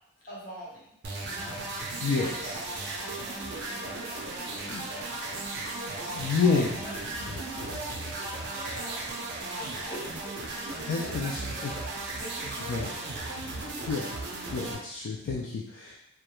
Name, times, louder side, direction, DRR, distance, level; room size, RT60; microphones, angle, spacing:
voice 1, 0.3-0.9 1.2-1.6 2.1-2.5 3.1-5.2 6.0-7.0 7.3-11.8 12.1-13.2 13.6-14.1 14.5-14.8, equal, 40° left, -7 dB, 0.8 m, -45 dB
sound 1, 1.0-14.7, right 2 dB, 50° right, 0.4 m, -36 dB
voice 2, 2.0-2.5 4.7-4.9 6.1-6.8 7.6-7.7 10.9-11.7 12.7-12.9 13.9-14.1 14.5-16.0, left 4 dB, 65° left, -3 dB, 0.3 m, -29 dB
2.3 x 2.1 x 2.9 m, 0.77 s
head